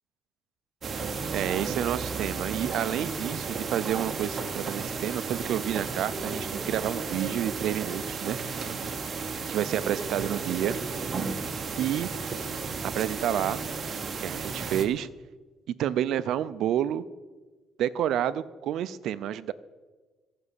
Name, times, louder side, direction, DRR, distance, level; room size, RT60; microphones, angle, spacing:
sound 1, 0.8-14.9, right 4 dB, 30° right, 1.0 m, -33 dB
voice 1, 1.3-8.4 9.5-10.8 11.8-12.1 12.8-13.6 14.2-15.1 15.7-17.0 17.8-19.5, right 11 dB, 60° right, 16 dB, 0.4 m, -29 dB
13.5 x 6.1 x 8.2 m, 1.3 s
cardioid pair, 160°, 0 cm